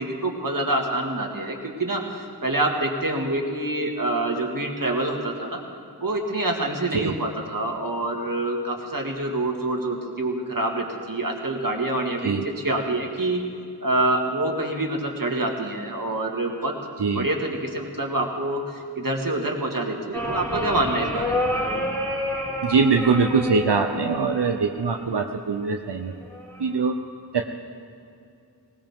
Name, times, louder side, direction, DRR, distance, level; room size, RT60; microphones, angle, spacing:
voice 1, 0.0-5.6 6.0-13.4 13.8-16.7 17.2-21.4, right 2 dB, 55° right, 1 dB, 2.1 m, -26 dB
sound 1, 20.1-25.2 26.3-26.8, left 1 dB, 10° left, 3.6 m, -29 dB
voice 2, 22.6-26.1 26.6-26.9 27.3-27.4, right 4 dB, 90° right, 4 dB, 0.8 m, -22 dB
19.5 x 19.0 x 3.7 m, 2.5 s
wide cardioid pair, 40°, 40 cm